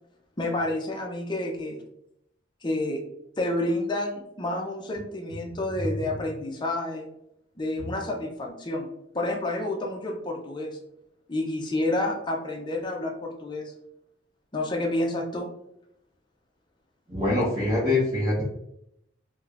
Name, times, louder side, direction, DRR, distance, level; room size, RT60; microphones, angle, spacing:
voice 1, 0.4-1.8 2.6-3.0 3.4-7.1 7.6-10.8 11.3-13.7 14.5-15.5, left 1 dB, 25° left, 1 dB, 0.5 m, -29 dB
voice 2, 17.1-18.5, left 2 dB, 25° right, -8 dB, 0.8 m, -24 dB
4.8 x 2.2 x 2.4 m, 0.79 s
head